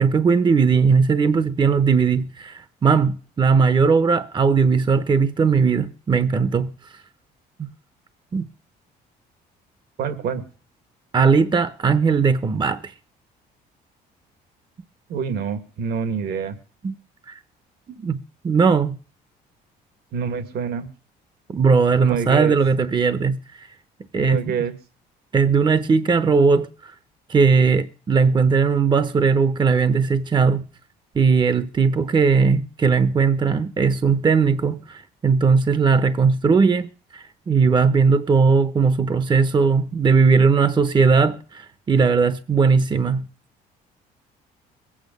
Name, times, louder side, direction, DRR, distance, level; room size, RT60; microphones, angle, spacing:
voice 1, 0.0-6.7 7.6-7.7 8.3-8.4 11.1-12.9 16.8-16.9 17.3-17.4 18.0-19.0 21.5-23.7 24.1-24.4 25.3-26.9 27.3-30.6 31.1-43.2, right 5 dB, 25° right, 0.9 m, -18 dB
voice 2, 10.0-10.4 15.1-16.6 20.1-20.9 22.0-22.6 24.2-24.7, right 6 dB, 70° right, 2.1 m, -26 dB
22.0 x 8.7 x 5.3 m
cardioid pair, 110°, 17 cm